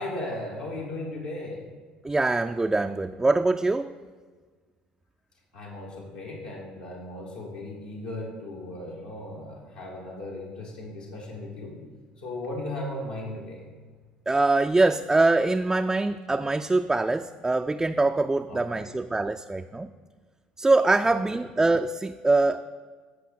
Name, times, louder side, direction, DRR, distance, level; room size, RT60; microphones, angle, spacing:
voice 1, 0.0-1.7 5.5-11.8 12.2-13.7 18.5-18.9 21.0-21.1, left 1 dB, 80° left, -5 dB, 1.8 m, -36 dB
voice 2, 2.0-3.9 14.3-19.9 20.6-22.7, right 2 dB, 10° right, 6 dB, 0.3 m, -23 dB
15.5 x 5.5 x 4.3 m, 1.5 s
figure-of-eight pair, 60°, 4 cm